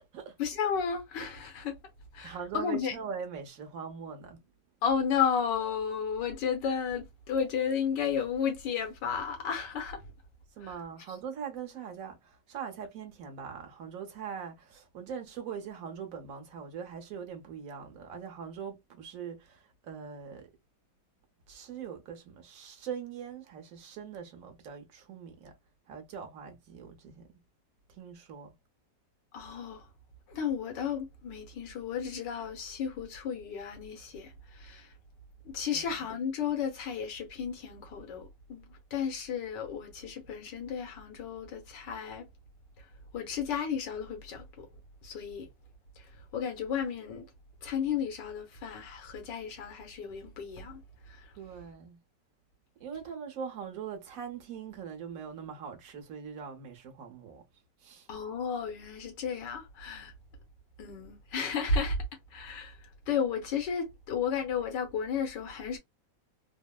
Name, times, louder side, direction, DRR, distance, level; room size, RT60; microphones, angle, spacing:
voice 1, 0.4-1.7 2.1-2.9 4.8-10.1 10.6-10.7 29.3-29.9 30.3-34.9 35.5-42.3 42.8-42.9 43.1-44.7 45.0-45.5 46.0-46.1 46.3-47.3 47.6-50.8 51.1-51.3 58.1-60.1 60.8-62.0 62.3-65.8, left 6 dB, 90° left, 1.6 m, -33 dB
voice 2, 2.2-4.4 10.5-20.5 21.5-25.5 25.9-27.3 27.9-28.5 35.7-36.0 51.4-52.0 52.8-57.4 57.8-58.1, right 7 dB, 60° right, 1.1 m, -42 dB
3.5 x 2.0 x 2.2 m
omnidirectional pair, 1.9 m